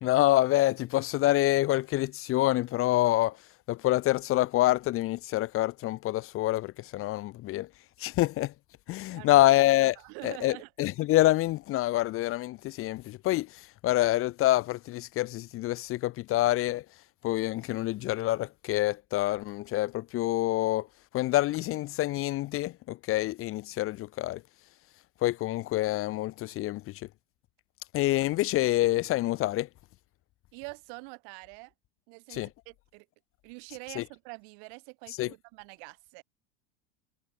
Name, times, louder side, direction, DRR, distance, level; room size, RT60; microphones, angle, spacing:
voice 1, 0.0-7.7 8.0-8.5 8.9-9.9 10.2-16.9 17.2-20.9 21.1-24.4 25.2-27.1 27.9-29.7 32.3-32.5 34.0-34.1 35.2-35.3, left 16 dB, 35° left, 0.7 m, -27 dB
voice 2, 9.1-9.5 10.0-10.7 30.5-31.7 32.1-33.1 33.4-36.2, right 40 dB or more, 60° right, 4.2 m, -45 dB
hypercardioid pair, 85°, 37 cm